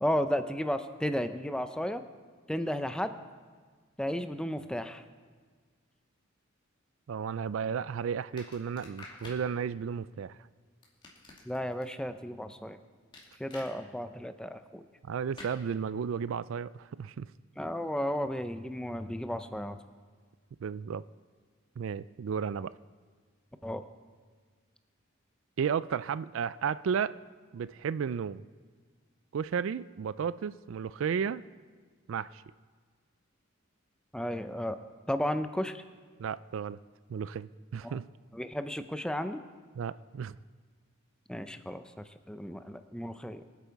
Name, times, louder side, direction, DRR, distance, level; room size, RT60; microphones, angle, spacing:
voice 1, 0.0-2.0 2.5-3.1 4.0-5.0 11.5-12.8 13.4-14.8 17.6-19.8 23.6-23.8 34.1-34.8 35.1-35.8 37.8-38.0 38.3-39.4 41.3-43.4, equal, 5° left, 10 dB, 0.5 m, -33 dB
voice 2, 7.1-10.4 15.0-17.3 20.6-21.0 21.8-22.7 25.6-27.2 27.5-28.4 29.3-31.4 32.1-32.4 36.2-36.8 37.1-38.1 39.8-40.4, right 7 dB, 70° right, 17 dB, 0.3 m, -33 dB
sound 1, 8.4-9.4 10.8-11.8 13.1-13.7 15.4-15.6, left 2 dB, 25° left, 2.4 m, -48 dB
24.5 x 8.4 x 4.6 m, 1.5 s
head